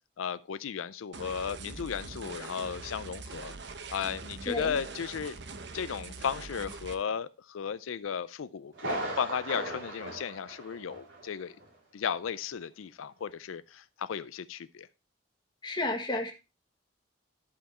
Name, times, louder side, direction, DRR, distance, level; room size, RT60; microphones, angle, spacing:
voice 1, 0.2-3.5 3.9-5.4 5.7-11.5 11.9-14.9, left 7 dB, 90° left, 0.4 m, -35 dB
sound 1, 1.1-6.9, right 3 dB, 60° right, 0.9 m, -43 dB
Thunder, 8.7-11.3 11.6-11.7 12.2-12.3, right 1 dB, 75° right, 3.7 m, -37 dB
voice 2, 15.6-16.3, left 2 dB, 20° left, 1.4 m, -31 dB
11.0 x 5.7 x 4.2 m
head